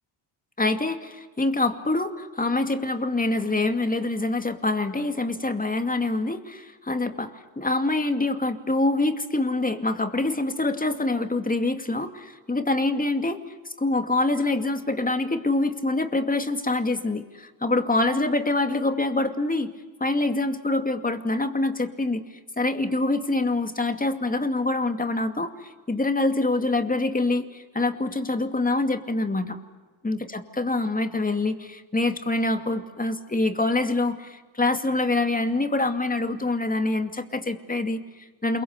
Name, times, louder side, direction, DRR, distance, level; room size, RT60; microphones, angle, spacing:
voice 1, 0.6-13.4 13.6-19.7 20.0-22.2 22.6-29.6 30.0-38.6, left 2 dB, 15° left, 7 dB, 2.4 m, -25 dB
28.5 x 23.0 x 8.2 m, 1.3 s
cardioid pair, 85°, 48 cm